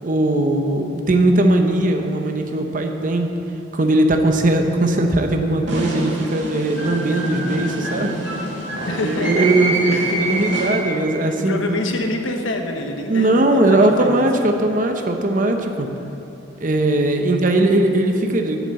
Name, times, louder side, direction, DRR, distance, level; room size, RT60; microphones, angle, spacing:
voice 1, 0.0-3.3 3.7-8.3 9.0-11.8 13.1-15.9 16.6-18.7, right 1 dB, 40° right, 4 dB, 0.7 m, -19 dB
sound 1, 5.7-11.1, right 2 dB, 70° right, 2.1 m, -26 dB
voice 2, 8.9-9.5 9.9-10.2 11.2-14.5, left 2 dB, 85° left, 3 dB, 1.1 m, -27 dB
9.1 x 7.2 x 7.5 m, 2.9 s
head